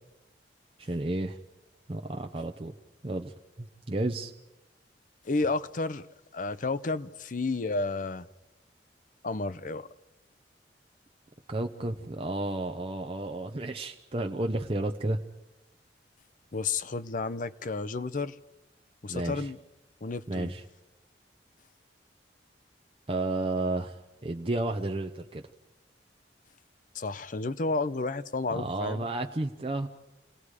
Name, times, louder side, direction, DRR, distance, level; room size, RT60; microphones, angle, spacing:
voice 1, 0.8-1.4 1.9-2.7 3.0-3.3 3.6-4.3 11.5-15.2 19.1-19.5 20.3-20.6 23.1-25.4 28.5-29.9, right 2 dB, 30° right, 0.7 m, -32 dB
voice 2, 5.2-6.1 6.3-8.3 9.2-9.9 16.5-18.4 19.0-19.6 20.0-20.5 26.9-29.1, left 3 dB, 45° left, 0.7 m, -31 dB
28.5 x 19.0 x 4.9 m
head